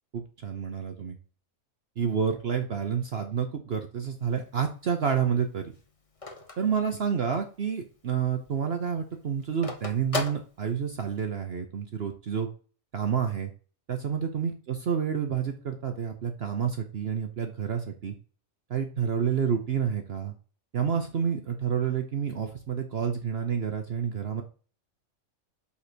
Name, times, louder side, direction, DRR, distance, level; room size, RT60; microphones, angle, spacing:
voice 1, 0.1-1.2 2.0-5.7 6.6-12.5 12.9-13.5 13.9-18.1 18.7-20.3 20.7-24.4, right 7 dB, 50° right, 6 dB, 1.0 m, -29 dB
Telephone, 4.2-7.6 8.0-8.1 8.3-11.2, left 3 dB, 25° left, 1.1 m, -37 dB
5.8 x 4.2 x 6.1 m, 0.39 s
omnidirectional pair, 1.4 m